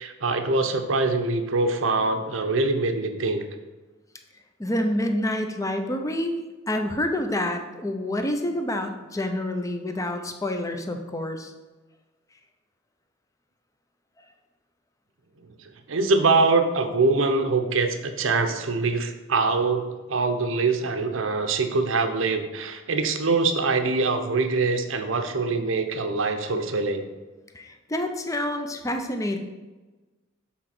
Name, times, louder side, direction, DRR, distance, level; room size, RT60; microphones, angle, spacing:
voice 1, 0.0-3.4 15.9-27.0, right 3 dB, 75° right, 7 dB, 0.7 m, -24 dB
voice 2, 4.6-6.4 6.7-11.5 27.5-29.4, left 1 dB, 15° left, 5 dB, 0.6 m, -28 dB
7.2 x 3.8 x 5.9 m, 1.2 s
head